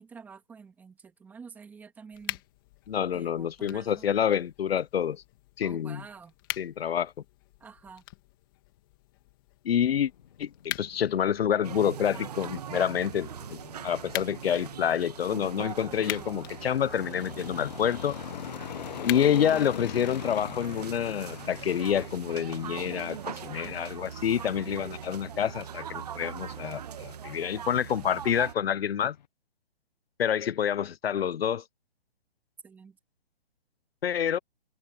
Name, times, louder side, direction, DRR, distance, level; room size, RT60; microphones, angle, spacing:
voice 1, 0.0-2.4 3.1-4.1 5.6-6.3 7.6-8.0 32.6-33.0, right 5 dB, 5° right, 2.6 m, -48 dB
sound 1, 2.1-21.1, left 19 dB, 20° left, 2.3 m, -44 dB
voice 2, 2.9-5.2 5.6-6.0 6.6-7.1 9.6-10.1 10.4-13.6 13.8-18.2 19.0-29.1 30.2-31.6 34.0-34.4, left 9 dB, 75° left, 0.7 m, -28 dB
sound 2, 9.9-29.3, left 8 dB, 45° left, 1.1 m, -44 dB
sound 3, 11.6-28.5, right 9 dB, 40° right, 1.4 m, -41 dB
hypercardioid pair, 170°, 30 cm